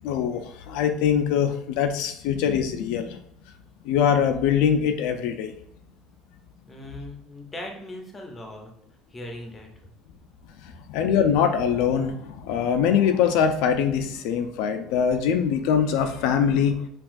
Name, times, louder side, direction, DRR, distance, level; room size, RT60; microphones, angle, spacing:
voice 1, 0.0-3.2 3.8-5.6 10.6-16.9, left 8 dB, 70° left, 7 dB, 0.4 m, -23 dB
voice 2, 6.7-8.7 9.1-9.7, left 1 dB, 15° left, 2 dB, 0.6 m, -39 dB
5.7 x 2.3 x 2.5 m, 0.70 s
cardioid pair, 170°, 0 cm